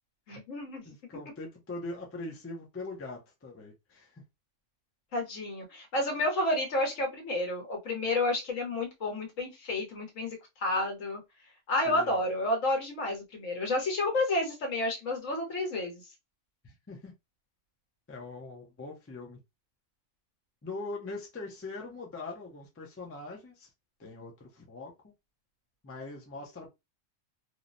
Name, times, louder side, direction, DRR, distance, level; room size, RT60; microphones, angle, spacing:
voice 1, 0.3-0.8 5.1-11.2 11.7-16.0, left 1 dB, 85° left, 1.4 m, -30 dB
voice 2, 0.8-4.2 11.8-12.2 16.6-17.1 18.1-19.4 20.6-23.7 24.0-25.1 25.8-26.7, left 2 dB, 20° left, 0.4 m, -42 dB
3.1 x 2.0 x 2.5 m
omnidirectional pair, 1.3 m